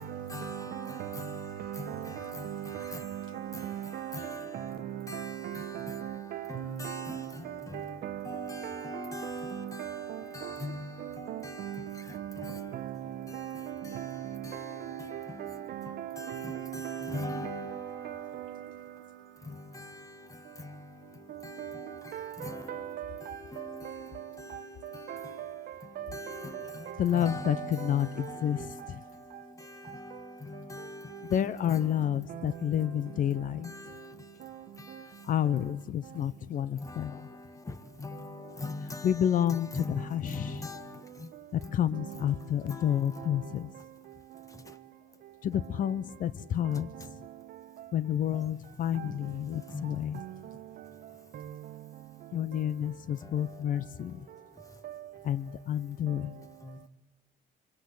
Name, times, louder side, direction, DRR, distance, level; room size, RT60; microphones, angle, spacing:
voice 1, 0.3-1.4 1.8-2.9 4.1-4.5 5.1-6.1 6.5-7.2 7.7-7.8 8.2-10.0 10.3-11.7 12.4-12.6 13.3-13.4 14.4-15.4 15.9-17.8 19.5-19.9 20.6-20.7 21.4-22.0 22.4-22.7 23.5-24.0 24.4-24.7 24.9-25.2 26.1-26.7 27.1-28.8 29.9-31.4 31.7-31.9 33.6-33.9 36.8-37.1 38.0-39.2 39.5-41.0 42.7-42.9 49.7-50.2, left 2 dB, 20° left, 1.6 m, -41 dB
voice 2, 1.6-3.2 3.4-4.8 5.1-7.3 7.7-8.9 9.2-9.4 9.8-10.0 10.4-10.6 11.3-11.7 12.1-12.9 13.3-13.7 13.9-17.8 18.0-18.1 21.6-21.7 22.1-23.1 23.8-24.0 25.1-25.2 26.0-26.1 27.4-27.6, right 12 dB, 65° right, 1.2 m, -38 dB
voice 3, 27.0-29.0 31.3-33.7 35.2-37.3 39.0-40.6 41.5-43.7 45.4-46.9 47.9-50.2 52.3-54.3 55.2-56.4, left 10 dB, 50° left, 0.8 m, -30 dB
26.5 x 23.5 x 8.5 m
cardioid pair, 110°, 17 cm